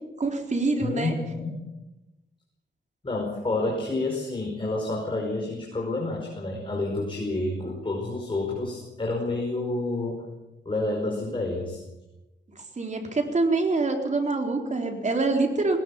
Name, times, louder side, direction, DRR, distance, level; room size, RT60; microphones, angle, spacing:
voice 1, 0.2-1.1 12.8-15.8, right 3 dB, 35° right, 3 dB, 4.1 m, -25 dB
voice 2, 0.8-1.6 3.0-10.2 10.6-11.8, left 2 dB, 25° left, -1 dB, 5.1 m, -29 dB
19.0 x 18.5 x 7.3 m, 1.0 s
wide cardioid pair, 100°, 20 cm